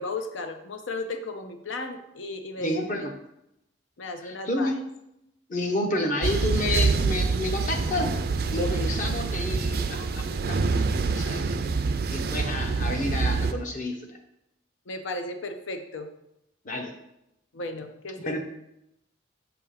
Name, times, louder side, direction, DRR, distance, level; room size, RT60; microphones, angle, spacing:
voice 1, 0.0-2.8 4.0-4.7 14.9-16.1 17.5-18.4, left 2 dB, 80° left, 7 dB, 0.6 m, -35 dB
voice 2, 2.6-3.1 4.2-4.7 5.5-8.2 8.5-11.6 12.1-14.2 16.6-16.9 18.3-18.4, left 1 dB, 40° left, 3 dB, 0.8 m, -30 dB
sound 1, 6.2-13.5, right 4 dB, 50° right, 0.4 m, -26 dB
6.9 x 2.8 x 5.6 m, 0.83 s
head